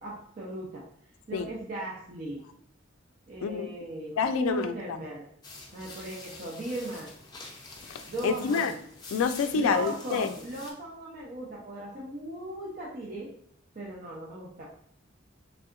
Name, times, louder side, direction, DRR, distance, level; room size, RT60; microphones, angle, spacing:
voice 1, 0.0-0.8 1.3-2.5 3.3-5.2 5.7-7.1 8.1-8.8 9.5-13.3 13.7-14.6, right 1 dB, 45° right, 0.5 m, -37 dB
voice 2, 4.2-4.7 7.8-8.7 9.1-10.3, left 6 dB, 85° left, 0.3 m, -28 dB
sound 1, 5.4-10.7, left 3 dB, 20° left, 0.5 m, -46 dB
3.3 x 2.7 x 2.4 m
head